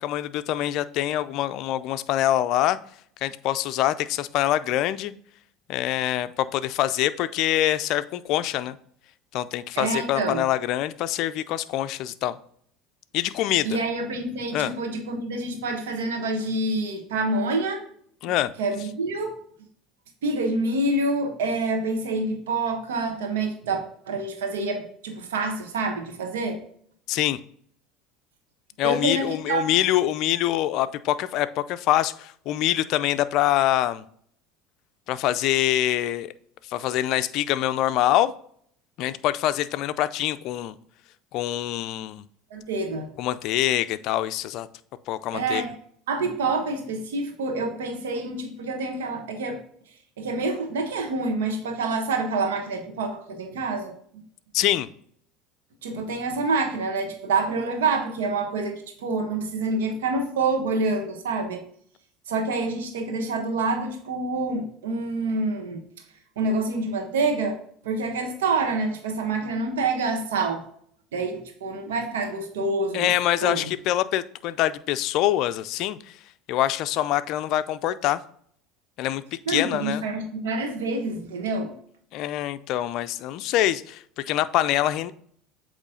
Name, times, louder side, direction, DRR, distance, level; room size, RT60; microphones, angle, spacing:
voice 1, 0.0-2.8 3.2-5.1 5.7-8.8 9.3-12.4 13.1-13.8 14.5-14.7 18.2-18.5 27.1-27.4 28.8-34.0 35.1-36.3 36.7-38.3 39.0-40.7 41.3-42.3 43.2-44.7 45.1-45.6 54.5-54.9 72.9-76.2 76.5-78.2 79.0-79.2 79.5-80.0 82.1-85.1, left 13 dB, 60° left, 13 dB, 0.4 m, -25 dB
voice 2, 9.8-10.4 13.6-17.8 18.2-18.3 18.6-19.3 20.2-26.6 28.8-29.7 42.5-43.1 45.3-45.7 46.1-49.6 50.2-53.9 55.8-61.6 62.3-65.8 66.4-67.6 67.8-70.6 71.1-73.1 73.4-73.6 79.5-81.7, right 3 dB, 90° right, 4 dB, 1.3 m, -27 dB
8.1 x 3.1 x 3.8 m, 0.63 s
supercardioid pair, 90°, 0 cm